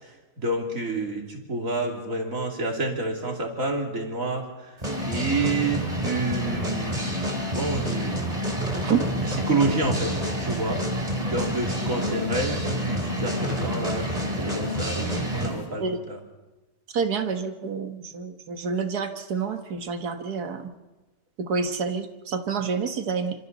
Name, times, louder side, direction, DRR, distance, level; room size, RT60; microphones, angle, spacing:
voice 1, 0.0-4.8 5.1-7.2 7.5-8.4 9.2-10.8 11.3-16.2, right 2 dB, 60° right, 1 dB, 3.4 m, -29 dB
sound 1, 4.8-15.6, equal, 25° right, 3.2 m, -28 dB
voice 2, 16.9-20.6 21.5-23.3, right 5 dB, 85° right, 7 dB, 1.9 m, -28 dB
27.0 x 25.5 x 4.1 m, 1.1 s
omnidirectional pair, 1.6 m